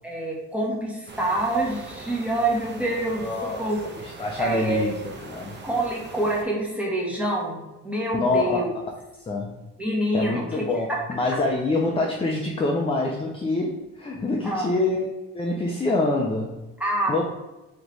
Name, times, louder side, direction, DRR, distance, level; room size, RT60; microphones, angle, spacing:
voice 1, 0.0-3.8 4.4-5.0 5.6-8.7 9.8-11.0 14.4-14.7 16.8-17.2, right 1 dB, 5° right, -4 dB, 1.3 m, -26 dB
Outdoor Ambience - - Stereo Out, 1.1-6.4, right 3 dB, 35° right, 0.7 m, -41 dB
voice 2, 3.2-3.6 4.0-5.6 8.1-8.6 9.3-9.5 10.1-15.1 15.3-16.6 17.1-17.2, left 2 dB, 20° left, -1 dB, 0.5 m, -25 dB
3.3 x 3.0 x 4.0 m, 1.0 s
cardioid pair, 90°, 30 cm